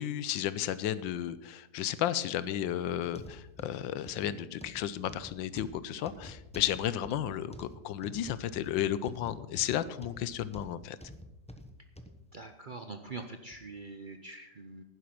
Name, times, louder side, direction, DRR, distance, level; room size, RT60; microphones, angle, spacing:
voice 1, 0.0-11.0, left 11 dB, 90° left, 15 dB, 1.4 m, -33 dB
sound 1, 3.0-12.2 12.7-12.8 13.5-13.6, left 1 dB, 5° left, 0.5 m, -49 dB
voice 2, 12.3-14.8, right 3 dB, 65° right, 6 dB, 0.4 m, -44 dB
11.5 x 10.0 x 5.9 m, 0.94 s
omnidirectional pair, 2.0 m